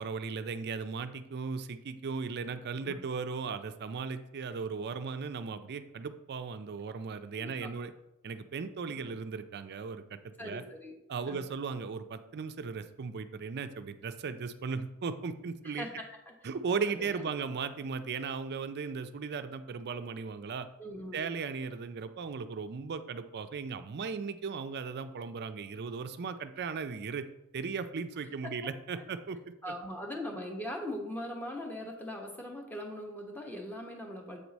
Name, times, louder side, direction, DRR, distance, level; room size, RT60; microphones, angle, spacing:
voice 1, 0.0-7.9 8.2-10.6 11.1-15.9 16.4-20.7 21.1-27.2 27.5-29.5, right 5 dB, 45° right, 10 dB, 0.4 m, -37 dB
voice 2, 7.4-7.7 8.9-9.1 10.4-10.9 11.3-11.4 15.6-16.3 17.0-17.1 20.8-21.3 28.4-28.5 29.0-29.1 29.6-34.4, left 1 dB, 10° left, 1 dB, 1.0 m, -40 dB
7.9 x 4.7 x 4.0 m, 0.90 s
head